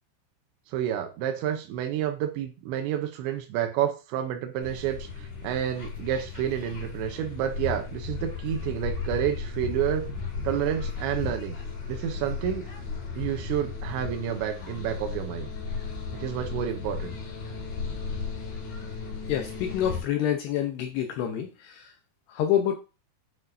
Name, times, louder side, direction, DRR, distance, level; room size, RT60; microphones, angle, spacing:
voice 1, 0.7-10.1 10.4-11.6 11.9-12.7 13.2-15.5 16.1-17.2, right 10 dB, 80° right, 6 dB, 2.9 m, -29 dB
sound 1, 4.6-20.0, left 5 dB, 45° left, 3.2 m, -35 dB
voice 2, 19.3-21.9 22.3-22.7, left 10 dB, 75° left, 4 dB, 2.5 m, -27 dB
8.9 x 6.1 x 2.7 m, 0.31 s
omnidirectional pair, 5.5 m